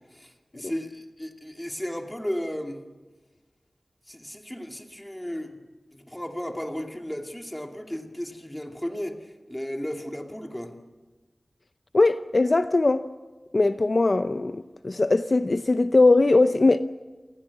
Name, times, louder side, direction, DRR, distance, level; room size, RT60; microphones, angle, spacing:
voice 1, 0.1-2.8 4.1-5.6 5.9-10.8, equal, 10° left, 2.4 m, -34 dB
voice 2, 11.9-13.1 13.5-16.8, left 2 dB, 55° left, 0.7 m, -20 dB
28.5 x 19.5 x 7.2 m
wide cardioid pair, 70°, 0 cm